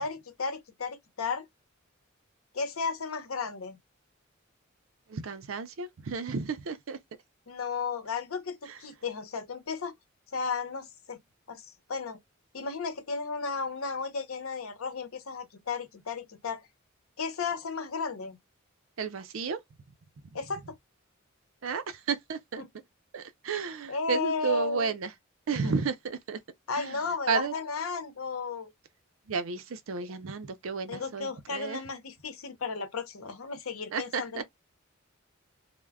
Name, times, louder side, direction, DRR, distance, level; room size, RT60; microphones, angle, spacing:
voice 1, 0.0-1.5 2.5-3.8 7.5-9.9 10.3-11.2 11.5-12.2 12.5-16.6 17.2-18.4 20.3-20.6 22.6-22.7 23.9-25.0 25.6-25.7 26.7-28.7 30.9-34.4, left 4 dB, 90° left, 0.8 m, -34 dB
voice 2, 5.1-7.0 19.0-19.6 21.6-22.6 23.1-25.1 25.5-26.4 26.8-27.0 27.3-27.5 29.3-31.8 33.9-34.4, right 5 dB, 75° right, 0.5 m, -32 dB
2.3 x 2.1 x 3.3 m
head